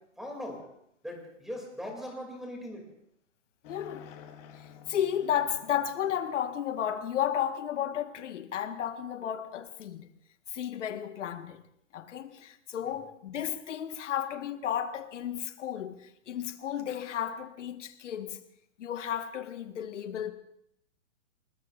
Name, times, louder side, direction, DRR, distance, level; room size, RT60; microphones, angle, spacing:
voice 1, 0.2-0.6 1.0-2.8 12.8-12.9, left 1 dB, ahead, 2.5 m, -40 dB
voice 2, 3.6-4.1 4.6-10.1 10.5-11.6 11.9-18.4 18.8-20.3, left 9 dB, 65° left, 1.4 m, -33 dB
sound 1, 3.6-8.0, left 8 dB, 15° left, 0.9 m, -53 dB
28.0 x 19.5 x 2.5 m
hypercardioid pair, 165°, 39 cm